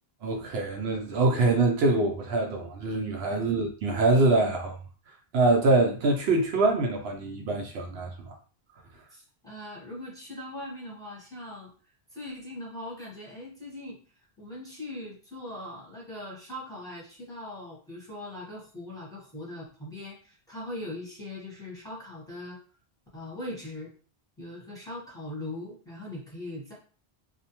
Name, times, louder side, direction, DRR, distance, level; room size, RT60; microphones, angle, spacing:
voice 1, 0.2-4.8 5.1-8.3, right 2 dB, 75° right, 0.8 m, -24 dB
voice 2, 9.1-11.7 12.1-14.0 14.4-22.6 23.1-23.9 24.4-26.7, left 1 dB, 5° left, 0.9 m, -40 dB
2.6 x 2.1 x 2.8 m
omnidirectional pair, 1.1 m